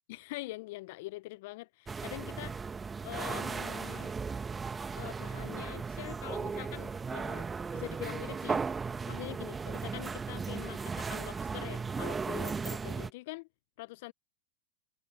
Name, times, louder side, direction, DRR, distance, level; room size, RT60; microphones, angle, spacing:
voice 1, 0.1-2.6 3.0-4.1 4.9-8.6 9.1-13.5 13.8-14.1, left 21 dB, 60° left, 0.8 m, -44 dB
sound 1, 1.9-13.1, right 5 dB, 15° right, 1.6 m, -36 dB
hypercardioid pair, 95°, 0 cm